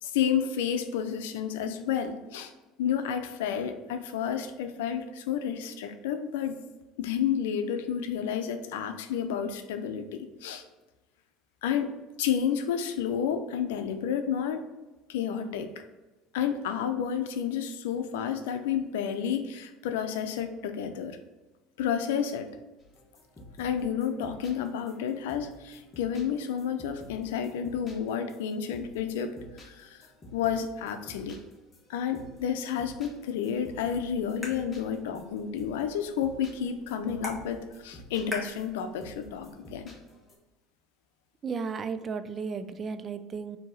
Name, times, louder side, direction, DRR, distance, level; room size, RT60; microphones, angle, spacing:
voice 1, 0.0-2.5 2.8-6.6 7.0-10.6 11.6-11.9 12.2-14.6 15.1-15.7 16.3-21.2 21.8-22.5 23.6-29.4 29.6-30.0 30.3-31.4 31.9-39.8, left 8 dB, 90° left, 8 dB, 0.5 m, -30 dB
sound 1, 22.8-40.3, left 1 dB, 25° left, 1.2 m, -51 dB
sound 2, 33.5-39.5, equal, 5° right, 1.4 m, -45 dB
voice 2, 41.4-43.6, right 5 dB, 35° right, 11 dB, 0.3 m, -34 dB
4.6 x 2.8 x 4.1 m, 1.1 s
supercardioid pair, 105°, 0 cm